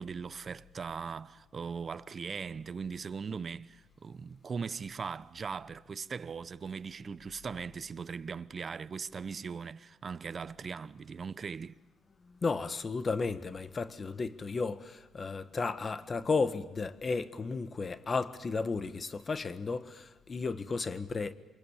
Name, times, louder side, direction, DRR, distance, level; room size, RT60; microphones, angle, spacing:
voice 1, 0.0-11.8, right 5 dB, 40° right, 0.9 m, -39 dB
voice 2, 12.2-21.3, left 4 dB, 35° left, 1.6 m, -33 dB
28.0 x 25.0 x 7.3 m
cardioid pair, 90°, 0 cm